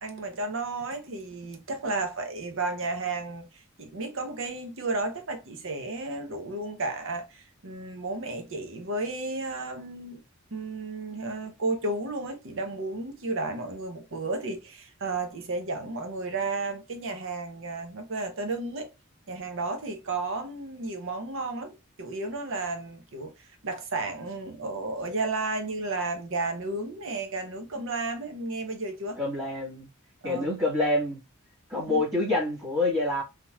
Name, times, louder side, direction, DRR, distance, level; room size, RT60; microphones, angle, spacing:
voice 1, 0.0-10.2 10.5-18.9 19.3-29.2 30.2-30.5 31.9-32.1, right 3 dB, 65° right, 0.8 m, -33 dB
voice 2, 29.2-29.9 30.2-31.2 31.7-33.2, left 2 dB, 15° right, 1.7 m, -27 dB
3.7 x 2.8 x 2.3 m
head